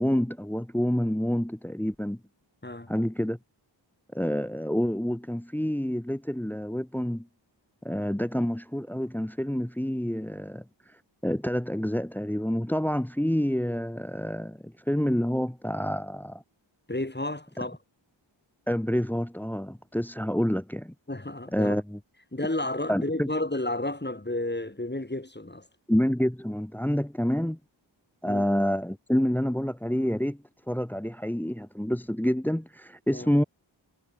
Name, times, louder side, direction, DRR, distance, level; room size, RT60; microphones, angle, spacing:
voice 1, 0.0-2.2 2.9-3.4 4.1-7.3 7.8-16.4 18.7-20.9 21.5-22.0 22.9-23.3 25.9-27.6 28.2-30.4 30.7-33.4, equal, 5° left, 1.3 m, -28 dB
voice 2, 16.9-17.8 21.1-21.8 22.3-25.7 28.2-28.4 33.1-33.3, left 1 dB, 20° left, 7.9 m, -31 dB
wide cardioid pair, 85°, 46 cm